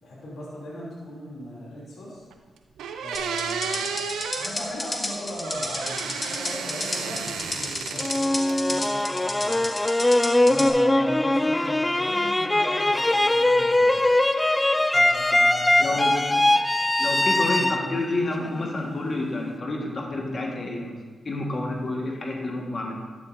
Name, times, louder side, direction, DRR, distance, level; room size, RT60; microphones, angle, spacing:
voice 1, 0.0-2.2 3.0-9.6 10.4-14.0 14.9-16.0 16.3-16.4 17.6-17.7 21.7-21.9, left 1 dB, 75° left, -6 dB, 2.6 m, -38 dB
sound 1, 2.3-2.4 2.8-4.5 5.4-8.2 8.5-9.2, right 6 dB, 90° right, 0.5 m, -32 dB
sound 2, 3.1-10.7, left 2 dB, 35° left, 1.6 m, -31 dB
sound 3, 8.0-19.0, left 1 dB, 20° left, 0.3 m, -21 dB
voice 2, 15.8-16.1 17.0-20.9 21.2-22.9, left 2 dB, 50° left, 0 dB, 1.4 m, -29 dB
11.0 x 7.5 x 2.5 m, 1.5 s
supercardioid pair, 50°, 0 cm